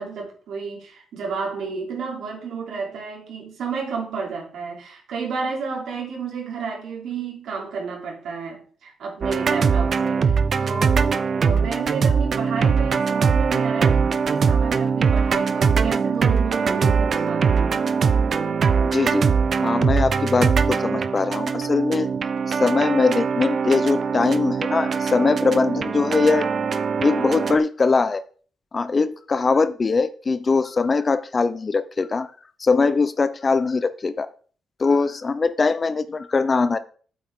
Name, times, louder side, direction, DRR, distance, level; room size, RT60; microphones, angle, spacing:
voice 1, 0.0-17.8, right 5 dB, 80° right, 3.2 m, -31 dB
sound 1, 9.2-27.6, right 5 dB, 45° right, 0.6 m, -21 dB
voice 2, 18.9-19.3 19.6-22.1 22.5-26.5 27.0-28.2 28.7-32.3 32.6-34.3 34.8-36.8, left 4 dB, 30° left, 0.6 m, -21 dB
8.4 x 8.3 x 3.7 m
cardioid pair, 125°, 0 cm